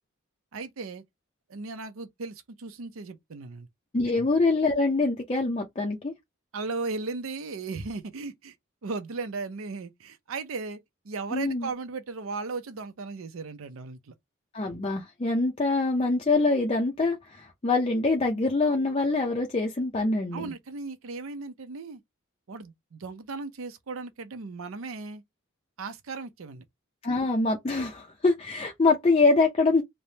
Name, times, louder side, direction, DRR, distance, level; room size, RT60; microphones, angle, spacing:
voice 1, 0.5-1.0 1.5-3.7 4.1-4.2 6.5-8.5 8.8-14.1 20.3-22.0 22.5-25.2 25.8-26.6, right 4 dB, 80° right, 0.5 m, -36 dB
voice 2, 3.9-6.1 11.3-11.7 14.5-20.5 27.0-29.8, left 3 dB, 30° left, 0.4 m, -24 dB
3.2 x 2.1 x 2.7 m
head